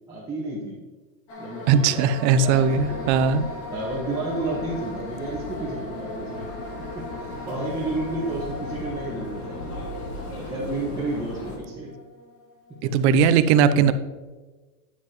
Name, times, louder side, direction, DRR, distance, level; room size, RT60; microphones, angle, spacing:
voice 1, 0.1-0.8 1.4-3.0 3.7-6.5 6.9-9.7 10.4-11.9 12.8-13.1, right 2 dB, 10° right, -7 dB, 1.5 m, -31 dB
sound 1, 1.3-13.2, left 2 dB, 30° left, 1.9 m, -39 dB
voice 2, 1.7-3.5 12.8-13.9, right 6 dB, 50° right, 12 dB, 0.7 m, -19 dB
sound 2, 2.4-11.6, left 1 dB, 90° left, 2.9 m, -38 dB
9.5 x 7.7 x 3.1 m, 1.3 s
supercardioid pair, 140°, 44 cm